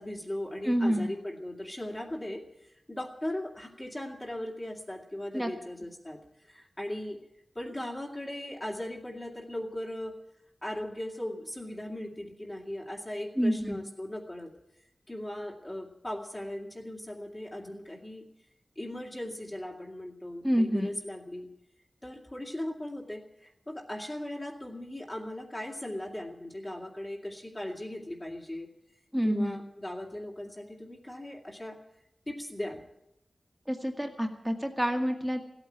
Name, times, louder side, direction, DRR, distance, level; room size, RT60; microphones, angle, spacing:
voice 1, 0.0-7.2 7.5-10.1 10.6-14.5 15.1-18.2 18.8-21.5 22.0-28.7 29.2-31.8 32.3-32.8, left 1 dB, 25° left, -2 dB, 2.5 m, -38 dB
voice 2, 0.6-1.1 5.3-5.5 13.4-13.8 20.4-20.9 29.1-29.6 33.7-35.4, equal, 5° right, 4 dB, 1.9 m, -28 dB
16.0 x 8.9 x 9.4 m, 0.83 s
wide cardioid pair, 85°, 0 cm